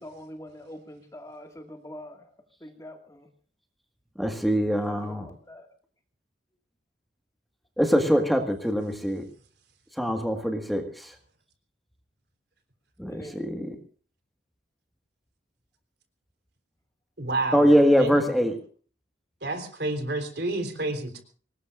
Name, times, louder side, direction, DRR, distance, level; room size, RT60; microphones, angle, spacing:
voice 1, 0.0-2.2 2.6-3.3 4.9-5.7 13.1-13.4, left 1 dB, 20° left, 5 dB, 2.0 m, -44 dB
voice 2, 4.2-5.3 7.8-9.2 10.0-11.1 13.0-13.8 17.5-18.6, equal, ahead, 4 dB, 1.7 m, -23 dB
voice 3, 17.2-17.7 18.0-18.2 19.4-21.2, right 2 dB, 70° right, 6 dB, 3.7 m, -29 dB
25.0 x 19.5 x 2.5 m, 0.41 s
head